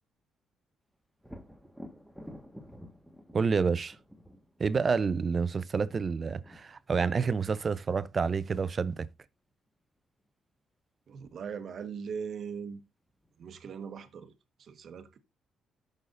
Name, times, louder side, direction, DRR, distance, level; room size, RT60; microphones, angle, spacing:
Thunder, 1.2-8.9 12.5-12.6 13.1-14.0, equal, ahead, 1.4 m, -52 dB
voice 1, 3.3-4.0 4.6-9.1, right 5 dB, 40° right, 0.6 m, -28 dB
voice 2, 11.1-12.8 13.4-14.3 14.6-15.2, right 6 dB, 60° right, 1.2 m, -40 dB
13.5 x 6.5 x 2.5 m
cardioid pair, 90°, 0 cm